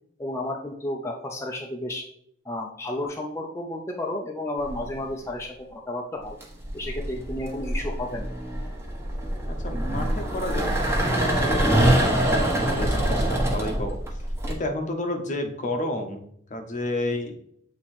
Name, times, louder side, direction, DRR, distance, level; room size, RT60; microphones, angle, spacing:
voice 1, 0.2-2.1 2.4-6.4 6.7-8.3, left 1 dB, 15° left, 0 dB, 0.6 m, -32 dB
sound 1, 4.7-5.1 6.2-14.5, right 1 dB, 15° right, 1.1 m, -24 dB
voice 2, 9.5-10.7 11.0-14.0 14.5-16.2 16.5-17.3, left 1 dB, 40° left, 5 dB, 0.8 m, -31 dB
7.6 x 2.9 x 4.3 m, 0.68 s
head